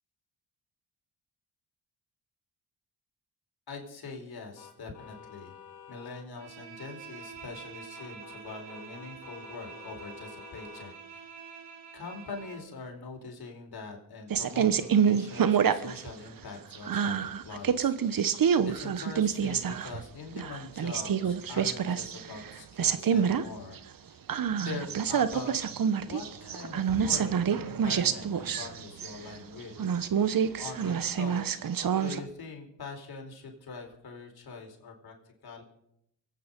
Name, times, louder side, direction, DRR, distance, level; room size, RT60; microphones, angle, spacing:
voice 1, 3.7-5.5 5.9-11.4 11.9-24.2 24.5-25.6 26.0-27.3 27.6-29.8 30.6-31.4 32.0-35.1 35.4-35.6, left 4 dB, 55° left, 2 dB, 4.4 m, -43 dB
sound 1, 4.5-6.3 8.0-11.0, left 8 dB, 90° left, 2.3 m, -50 dB
Bowed string instrument, 6.3-12.7, right 6 dB, 70° right, 2.8 m, -47 dB
sound 2, 14.3-16.1 16.5-20.0 20.4-22.5 22.8-23.4 23.8-23.9 24.3-29.3 29.8-32.2, right 7 dB, 50° right, 1.2 m, -27 dB
23.5 x 9.2 x 5.3 m, 0.76 s
supercardioid pair, 55°, 44 cm